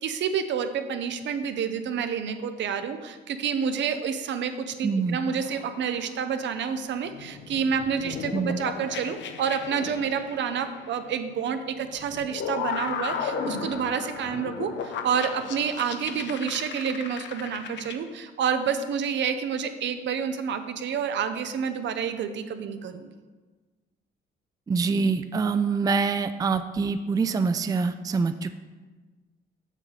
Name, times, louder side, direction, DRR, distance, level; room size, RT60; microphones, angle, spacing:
voice 1, 0.0-23.1, right 7 dB, 65° right, 9 dB, 0.7 m, -29 dB
voice 2, 4.8-5.2 8.3-8.6 24.7-28.5, right 4 dB, 20° right, 10 dB, 0.3 m, -25 dB
sound 1, 5.3-6.5 7.1-11.4 11.9-18.0, left 6 dB, 70° left, 0.7 m, -36 dB
7.3 x 6.5 x 4.1 m, 1.3 s
cardioid pair, 90°, 20 cm